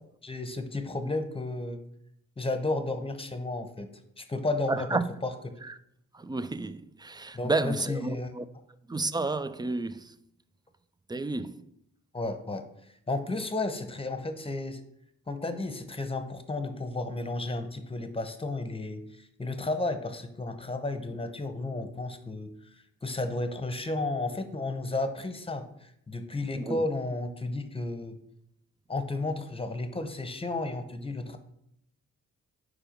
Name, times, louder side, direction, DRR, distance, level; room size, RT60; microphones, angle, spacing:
voice 1, 0.2-1.8 2.4-3.9 4.2-5.3 7.3-8.3 12.1-12.6 13.1-14.8 15.3-28.2 28.9-31.4, left 2 dB, 15° left, 0.9 m, -33 dB
voice 2, 4.7-5.1 5.6-5.7 6.1-8.4 8.9-10.2 11.1-11.6 26.6-26.8, right 3 dB, 15° right, 0.3 m, -31 dB
4.8 x 4.7 x 5.1 m
supercardioid pair, 45°, 32 cm